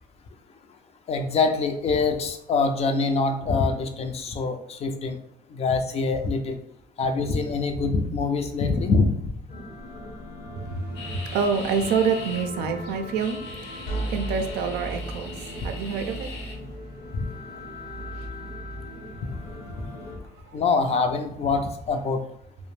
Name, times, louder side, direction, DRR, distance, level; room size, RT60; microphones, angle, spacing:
voice 1, 1.1-5.2 5.5-6.6 7.0-9.3 17.1-17.3 19.2-19.4 20.5-22.2, left 4 dB, 40° left, 6 dB, 0.4 m, -24 dB
sound 1, 9.5-20.2, equal, 65° left, 1.0 m, -37 dB
voice 2, 10.7-13.4 13.7-13.8 14.1-15.3 15.6-16.3, right 5 dB, 85° right, 7 dB, 0.4 m, -26 dB
sound 2, 11.0-12.4 12.8-16.6, left 3 dB, 90° left, 0.7 m, -41 dB
2.4 x 2.0 x 3.1 m, 0.70 s
cardioid pair, 110°, 17 cm